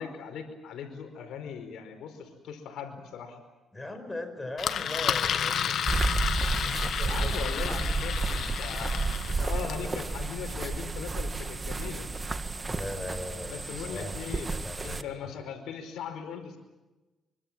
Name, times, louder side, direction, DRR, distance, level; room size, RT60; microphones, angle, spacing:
voice 1, 0.0-3.4 7.0-9.0 9.2-12.1 13.0-13.2 13.5-14.5 14.8-16.6, left 7 dB, 80° left, 6 dB, 4.9 m, -39 dB
voice 2, 3.7-6.1 6.6-7.3 12.7-15.3, left 1 dB, 15° left, 7 dB, 5.3 m, -39 dB
Engine, 4.6-9.9, left 8 dB, 65° left, 1.4 m, -31 dB
sound 1, 5.9-15.0, right 3 dB, 25° right, 1.7 m, -31 dB
25.0 x 25.0 x 7.6 m, 1.1 s
cardioid pair, 90°, 0 cm